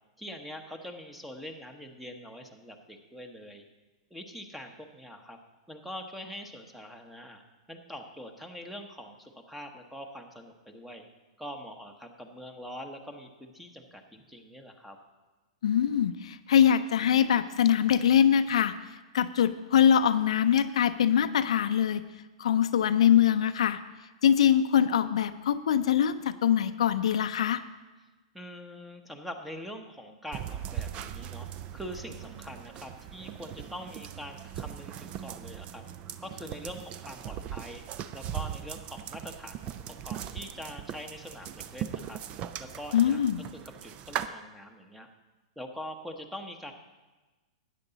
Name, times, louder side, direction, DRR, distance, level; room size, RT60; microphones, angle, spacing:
voice 1, 0.2-3.6 4.1-5.4 5.7-7.4 7.7-11.0 11.4-15.0 28.3-31.5 31.7-35.8 36.2-37.8 38.1-39.7 40.0-42.2 42.6-43.2 43.8-45.1 45.6-46.7, equal, 5° right, 5 dB, 1.0 m, -43 dB
voice 2, 15.6-18.7 19.1-22.0 22.4-23.8 24.2-27.6 42.9-43.4, left 9 dB, 75° left, 10 dB, 0.5 m, -23 dB
sound 1, 30.3-44.3, right 10 dB, 35° right, 0.5 m, -39 dB
13.0 x 9.2 x 4.0 m, 1.2 s
hypercardioid pair, 125°, 3 cm